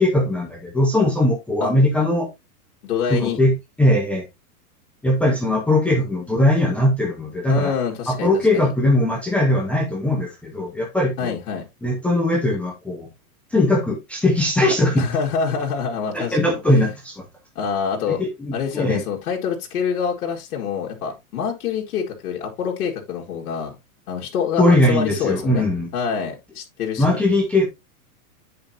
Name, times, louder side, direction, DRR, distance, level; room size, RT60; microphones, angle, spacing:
voice 1, 0.0-2.3 3.1-3.5 3.8-4.2 5.0-7.7 8.1-11.3 11.8-13.1 13.5-15.0 16.1-17.2 18.1-19.0 24.6-25.9 27.0-27.7, left 1 dB, 5° left, 0.5 m, -20 dB
voice 2, 2.8-3.4 7.5-8.7 11.2-11.6 14.9-16.9 17.6-18.2 18.5-23.7 24.1-25.7 25.9-27.2, left 6 dB, 70° left, 2.1 m, -26 dB
8.8 x 5.2 x 2.8 m
supercardioid pair, 155°, 45 cm